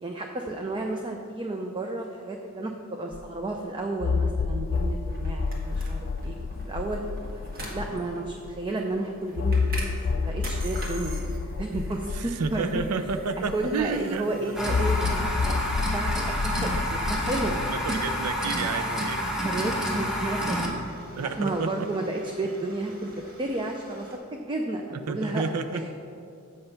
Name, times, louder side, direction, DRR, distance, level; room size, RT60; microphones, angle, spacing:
voice 1, 0.0-6.4 6.7-7.0 7.7-11.2 11.6-12.9 13.5-17.6 19.4-23.1 23.4-24.8 25.1-25.5 25.7-25.9, right 2 dB, 20° right, 2 dB, 0.4 m, -32 dB
sound 1, 3.1-3.2 4.0-8.5 9.4-14.0 14.7-17.7, left 4 dB, 50° left, 0.3 m, -29 dB
sound 2, 4.7-24.2, right 1 dB, 45° right, 1.5 m, -45 dB
voice 2, 12.2-14.3 16.5-16.7 17.6-19.2 19.7-19.8 21.1-21.7 25.1-25.9, right 4 dB, 85° right, 8 dB, 0.5 m, -30 dB
sound 3, 14.5-20.7, equal, ahead, 1.1 m, -29 dB
7.8 x 5.6 x 5.8 m, 2.5 s
head